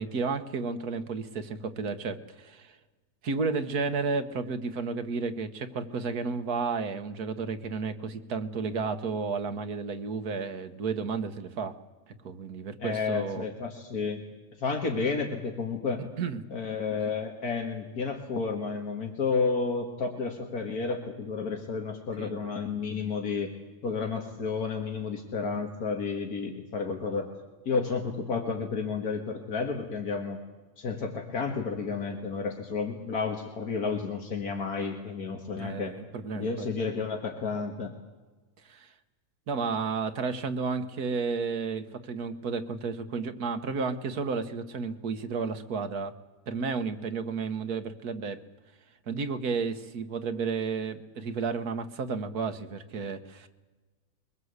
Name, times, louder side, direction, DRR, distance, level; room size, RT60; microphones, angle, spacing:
voice 1, 0.0-2.8 3.2-11.8 12.2-13.5 16.2-16.4 22.2-22.4 35.6-36.7 38.7-38.9 39.5-46.1 46.5-48.4 49.1-53.5, right 4 dB, 80° right, 9 dB, 1.8 m, -32 dB
voice 2, 12.8-14.2 14.6-16.0 16.5-23.5 23.8-27.3 27.7-30.4 30.8-35.9 36.3-37.9, left 4 dB, 80° left, 3 dB, 2.3 m, -31 dB
23.0 x 20.0 x 8.1 m, 1.3 s
omnidirectional pair, 1.6 m